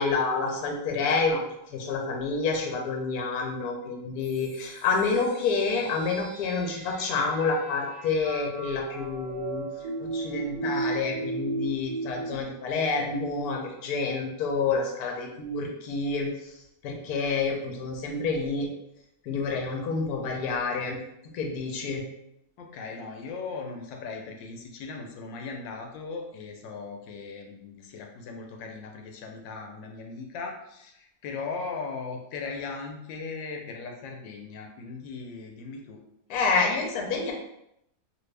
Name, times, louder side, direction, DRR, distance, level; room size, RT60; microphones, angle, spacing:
voice 1, 0.0-1.4 1.7-9.6 10.0-18.7 19.2-21.0 21.3-22.0 36.3-37.3, left 4 dB, 65° left, 0 dB, 1.1 m, -28 dB
sound 1, 4.2-12.4, right 3 dB, 65° right, 1.1 m, -36 dB
voice 2, 22.6-36.0, left 4 dB, 85° left, 3 dB, 1.3 m, -38 dB
2.9 x 2.6 x 3.2 m, 0.79 s
omnidirectional pair, 2.0 m